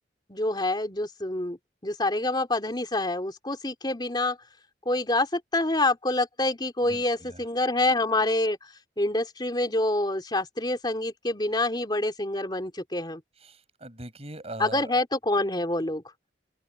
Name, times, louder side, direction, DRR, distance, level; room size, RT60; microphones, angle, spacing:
voice 1, 0.3-4.4 4.8-13.2 14.6-16.0, left 2 dB, 25° left, 3.3 m, -27 dB
voice 2, 6.8-7.5 13.4-15.0, right 1 dB, 35° right, 7.9 m, -41 dB
open air
head